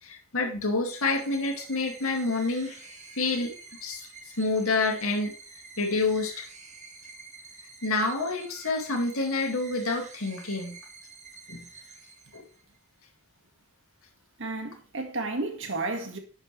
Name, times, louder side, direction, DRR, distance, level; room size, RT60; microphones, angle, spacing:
voice 1, 0.0-3.5 3.8-4.1 4.4-5.3 5.8-6.4 7.8-10.8 11.5-11.7 12.3-12.4, left 3 dB, 70° left, 2.4 m, -28 dB
sound 1, 0.9-12.8, right 4 dB, 30° right, 1.8 m, -48 dB
voice 2, 14.4-16.2, right 2 dB, 60° right, 1.8 m, -32 dB
11.5 x 8.1 x 3.3 m
head